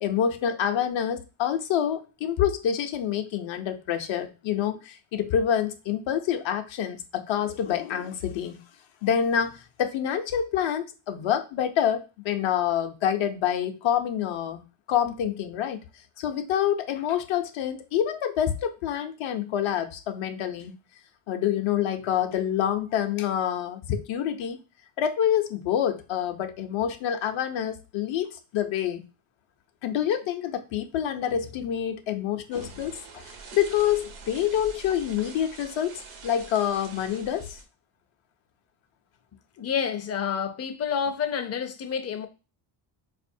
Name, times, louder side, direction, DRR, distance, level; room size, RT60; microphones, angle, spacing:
voice 1, 0.0-8.6 9.0-14.6 14.9-15.8 16.2-20.8 21.3-24.6 25.0-28.3 28.5-29.0 29.8-33.3 33.5-37.6, left 9 dB, 65° left, 0.7 m, -27 dB
sound 1, 32.5-37.6, right 4 dB, 85° right, 1.0 m, -45 dB
voice 2, 39.6-42.3, left 7 dB, 30° left, 0.5 m, -29 dB
4.2 x 2.6 x 2.6 m
cardioid pair, 85°, 49 cm